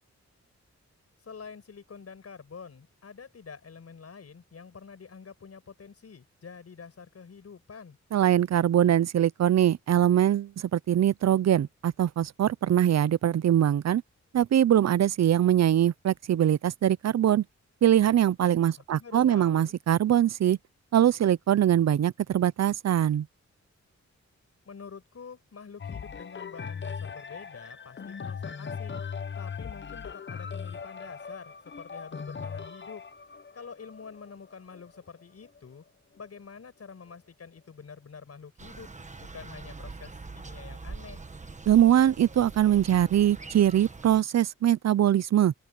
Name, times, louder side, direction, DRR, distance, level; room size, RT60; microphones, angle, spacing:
voice 1, 1.2-8.0 18.8-19.7 24.6-29.0 29.4-33.0 33.5-35.8 36.2-38.9 39.2-41.2, left 5 dB, 55° left, 6.1 m, -47 dB
voice 2, 8.1-14.0 14.3-17.4 17.8-20.6 20.9-23.3 41.7-45.5, right 11 dB, 65° right, 0.5 m, -22 dB
sound 1, 25.8-35.6 36.2-36.3, left 6 dB, 40° left, 0.8 m, -39 dB
sound 2, 38.6-44.2, right 3 dB, 25° right, 1.2 m, -43 dB
open air
wide cardioid pair, 170°, 29 cm